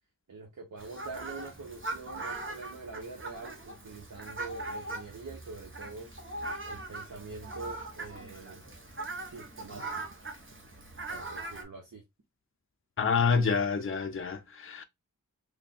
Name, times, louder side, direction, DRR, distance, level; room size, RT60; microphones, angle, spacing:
voice 1, 0.3-6.1 6.6-8.6 9.3-9.8 11.1-12.0, right 4 dB, 60° right, 0.9 m, -44 dB
Fowl, 0.8-11.6, right 2 dB, 35° right, 1.1 m, -41 dB
voice 2, 13.0-14.8, left 5 dB, 40° left, 0.6 m, -27 dB
3.3 x 2.2 x 4.2 m
wide cardioid pair, 45°, 34 cm